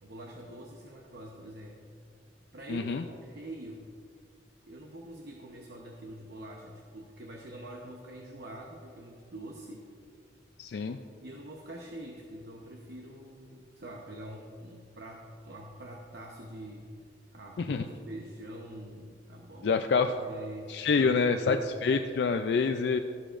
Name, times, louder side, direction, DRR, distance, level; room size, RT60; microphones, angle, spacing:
voice 1, 0.0-1.9 2.5-3.9 4.6-9.9 11.2-16.9 17.3-21.7, right 1 dB, 60° right, -1 dB, 0.9 m, -45 dB
voice 2, 2.7-3.0 10.6-11.0 17.6-17.8 19.6-20.1 20.7-23.0, left 4 dB, 65° left, 6 dB, 0.4 m, -27 dB
14.0 x 11.5 x 2.5 m, 2.4 s
head